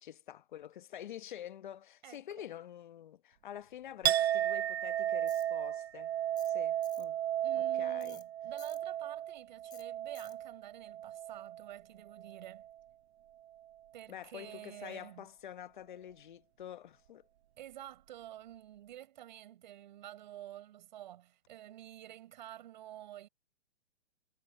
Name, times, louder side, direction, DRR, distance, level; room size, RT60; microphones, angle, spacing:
voice 1, 0.0-6.1 6.4-7.2 7.8-8.2 14.1-17.2, left 10 dB, 40° left, 1.2 m, -47 dB
voice 2, 2.0-2.5 7.4-12.7 13.9-15.3 17.6-23.3, right 12 dB, 40° right, 5.5 m, -50 dB
Chink clink, 4.0-11.7 12.1-12.7, right 11 dB, 60° right, 0.5 m, -34 dB
Tools, 5.3-5.5 6.4-6.6 6.8-7.1 8.0-8.2 8.6-8.8 9.7-9.8 10.1-10.4, left 11 dB, 10° left, 4.0 m, -55 dB
hypercardioid pair, 170°, 35 cm